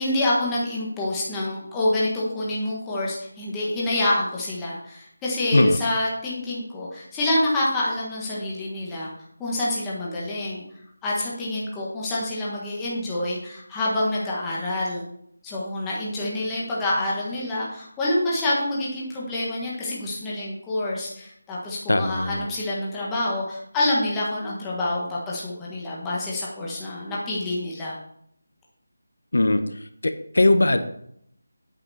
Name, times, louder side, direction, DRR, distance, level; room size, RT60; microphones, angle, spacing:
voice 1, 0.0-9.1 9.4-10.6 11.0-15.0 15.4-28.0, left 1 dB, 5° left, -6 dB, 1.3 m, -27 dB
voice 2, 21.9-22.4 29.3-29.6 30.0-30.8, left 2 dB, 70° left, 9 dB, 1.3 m, -19 dB
11.0 x 9.1 x 4.2 m, 0.69 s
figure-of-eight pair, 180°, 0 cm